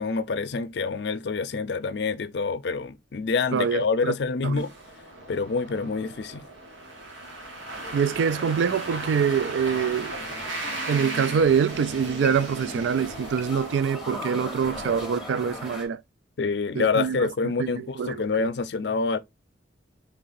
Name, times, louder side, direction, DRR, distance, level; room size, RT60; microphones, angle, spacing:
voice 1, 0.0-4.7 5.3-6.4 16.4-19.2, left 4 dB, 60° left, 0.4 m, -27 dB
voice 2, 3.5-4.1 4.4-4.6 7.9-10.1 10.9-16.0 16.7-17.3 17.6-18.5, right 7 dB, 70° right, 0.3 m, -25 dB
sound 1, 4.6-15.7, right 2 dB, 90° right, 1.5 m, -37 dB
sound 2, 6.9-15.9, left 1 dB, ahead, 0.9 m, -40 dB
4.0 x 3.5 x 2.6 m
head